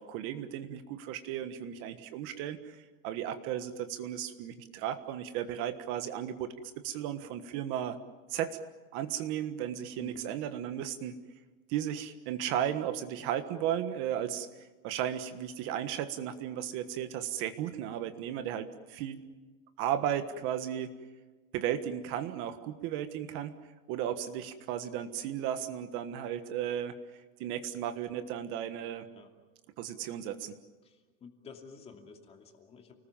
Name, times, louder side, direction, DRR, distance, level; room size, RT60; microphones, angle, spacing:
voice 1, 0.0-8.0 8.3-8.6 8.9-11.1 11.7-19.2 19.8-20.9 21.5-23.6 23.9-26.9 27.4-29.1 29.8-30.5, right 10 dB, 40° right, 10 dB, 1.4 m, -35 dB
voice 2, 10.0-10.3 29.1-29.3 30.8-33.0, left 5 dB, 20° left, 4 dB, 2.7 m, -51 dB
30.0 x 20.0 x 7.3 m, 1.3 s
supercardioid pair, 165°, 30 cm